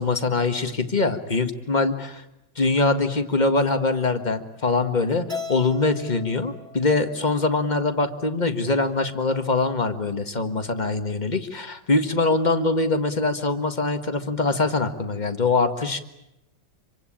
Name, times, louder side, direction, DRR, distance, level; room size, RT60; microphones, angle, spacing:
voice 1, 0.0-1.9 2.6-16.0, left 3 dB, 25° left, 7 dB, 1.7 m, -23 dB
Keyboard (musical), 5.3-7.6, left 3 dB, 15° right, 2.4 m, -38 dB
27.0 x 24.5 x 8.8 m, 0.90 s
omnidirectional pair, 1.9 m